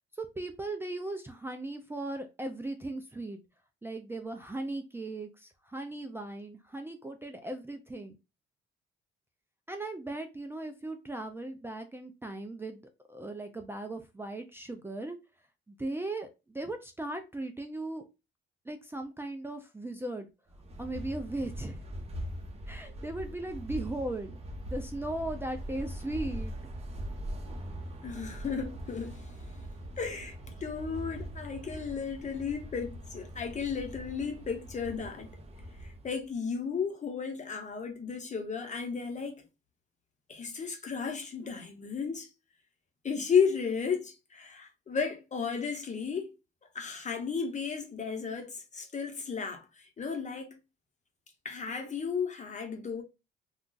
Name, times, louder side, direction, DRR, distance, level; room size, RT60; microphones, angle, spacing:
voice 1, 0.1-3.4 3.8-8.2 9.7-15.2 15.7-18.0 18.7-20.3 20.8-21.8 22.7-24.4 24.6-26.6, right 2 dB, 10° right, 0.4 m, -38 dB
sound 1, 20.5-36.2, right 1 dB, 30° right, 0.9 m, -41 dB
voice 2, 28.0-29.3 30.0-35.4 35.8-39.4 40.3-42.3 43.0-46.3 46.7-50.6 51.4-53.0, left 6 dB, 35° left, 0.9 m, -34 dB
2.5 x 2.3 x 3.8 m
cardioid pair, 90°, 20 cm